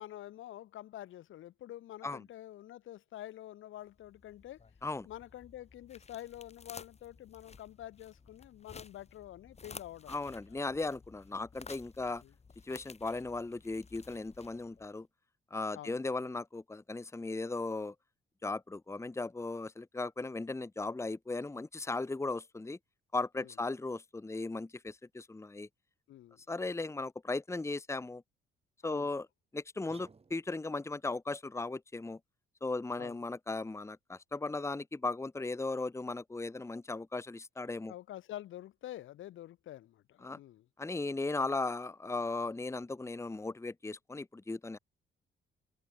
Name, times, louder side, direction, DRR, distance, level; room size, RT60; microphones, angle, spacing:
voice 1, 0.0-4.6 5.0-10.6 12.2-12.3 15.7-16.0 23.4-23.5 26.1-26.4 28.8-29.1 33.0-33.2 37.9-40.7, left 13 dB, 80° left, 2.8 m, -47 dB
sound 1, 3.9-14.9, left 5 dB, 35° left, 4.7 m, -54 dB
voice 2, 10.1-12.2 12.6-15.1 15.5-17.9 18.4-22.8 23.1-25.7 26.5-28.2 28.8-29.2 29.5-32.2 32.6-37.9 40.2-40.4 40.8-44.8, left 3 dB, 15° left, 1.2 m, -37 dB
sound 2, 29.9-30.8, right 4 dB, 30° right, 7.5 m, -58 dB
cardioid pair, 90°, 20 cm